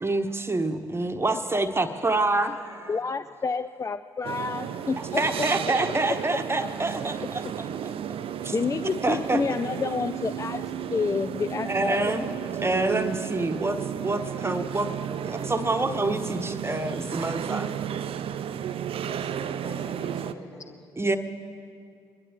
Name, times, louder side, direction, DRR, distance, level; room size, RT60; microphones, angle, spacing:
voice 1, 0.0-2.5 5.0-8.2 8.4-8.6 9.0-9.4 11.6-12.3 12.6-13.8 14.0-14.9 15.2-17.7 21.0-21.2, right 2 dB, 20° right, 7 dB, 1.1 m, -27 dB
voice 2, 1.9-3.2 19.0-20.9, left 2 dB, 70° left, -4 dB, 3.0 m, -45 dB
voice 3, 2.9-5.2 8.5-12.1, left 4 dB, 30° left, 12 dB, 0.4 m, -29 dB
sound 1, 4.2-20.3, right 9 dB, 55° right, 0.5 m, -33 dB
24.5 x 11.0 x 3.7 m, 2.3 s
hypercardioid pair, 45°, 11 cm